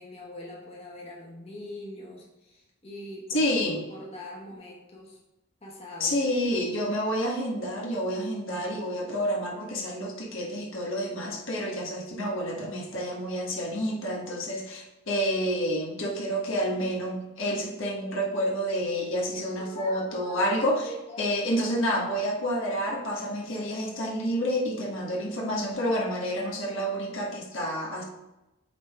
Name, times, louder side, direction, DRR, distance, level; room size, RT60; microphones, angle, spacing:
voice 1, 0.0-3.4 3.9-5.2 5.6-6.2 19.6-20.4 20.8-21.3, left 1 dB, 30° left, -3 dB, 1.3 m, -42 dB
voice 2, 3.3-3.8 6.0-20.9 21.2-28.0, equal, 75° left, -2 dB, 1.3 m, -29 dB
8.1 x 3.6 x 3.5 m, 0.99 s
head